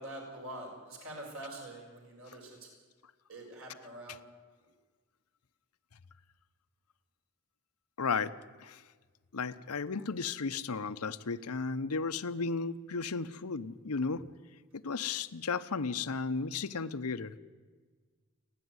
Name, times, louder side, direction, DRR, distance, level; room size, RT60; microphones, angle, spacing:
voice 1, 0.0-2.7 3.3-4.2, right 1 dB, 65° right, 0 dB, 6.1 m, -45 dB
voice 2, 8.0-8.8 9.3-14.2 14.7-17.3, left 4 dB, 85° left, 12 dB, 0.8 m, -34 dB
28.5 x 10.5 x 9.6 m, 1.5 s
head